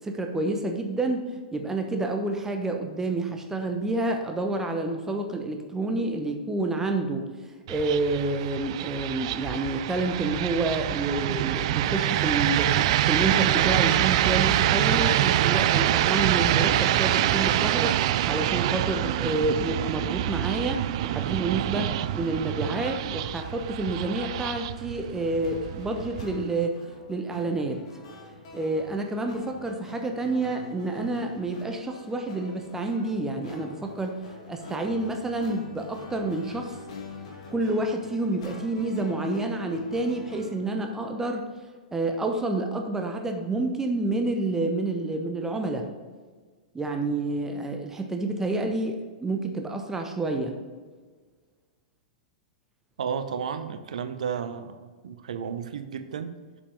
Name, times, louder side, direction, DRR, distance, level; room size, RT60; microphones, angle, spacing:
voice 1, 0.0-7.3 7.7-12.8 13.0-18.0 18.2-26.8 27.1-27.8 28.5-34.2 34.5-36.8 37.5-41.5 41.9-45.9 46.7-50.6, right 2 dB, 10° right, 4 dB, 0.9 m, -29 dB
sound 1, 7.7-26.6, right 13 dB, 50° right, 0.4 m, -25 dB
sound 2, 25.4-40.7, left 2 dB, 55° left, 2.2 m, -44 dB
voice 2, 53.0-56.3, right 7 dB, 65° right, 10 dB, 0.8 m, -33 dB
7.2 x 6.9 x 5.0 m, 1.5 s
figure-of-eight pair, 105°, 4 cm